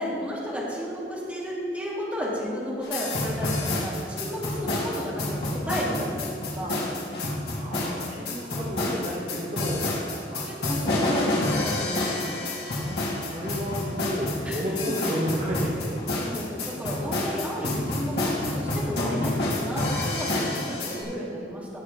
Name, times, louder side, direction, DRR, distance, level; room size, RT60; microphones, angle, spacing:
voice 1, 0.0-6.8 10.5-12.4 14.4-14.6 16.2-19.8 20.1-21.7, equal, 10° right, -7 dB, 2.5 m, -32 dB
sound 1, 2.8-21.0, left 2 dB, 70° left, 2.6 m, -28 dB
voice 2, 7.6-9.8 10.3-10.4 12.6-16.0, equal, 40° right, -6 dB, 1.5 m, -32 dB
17.0 x 7.1 x 3.4 m, 2.6 s
head